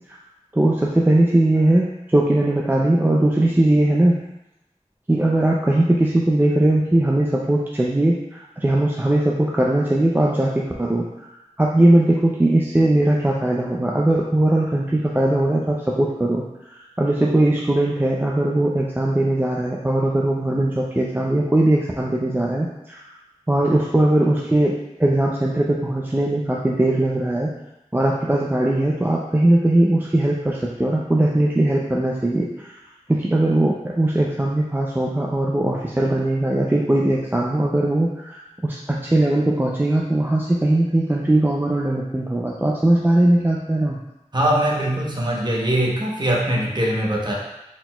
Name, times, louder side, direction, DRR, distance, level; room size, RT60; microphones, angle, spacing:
voice 1, 0.5-4.2 5.1-11.1 11.6-16.4 17.0-23.0 23.5-24.7 25.0-27.5 27.9-32.7 33.1-44.0, right 1 dB, 15° right, -3 dB, 0.4 m, -19 dB
voice 2, 44.3-47.3, right 1 dB, 35° right, -3 dB, 0.9 m, -21 dB
4.2 x 4.0 x 2.3 m, 0.91 s
wide cardioid pair, 50°, 12 cm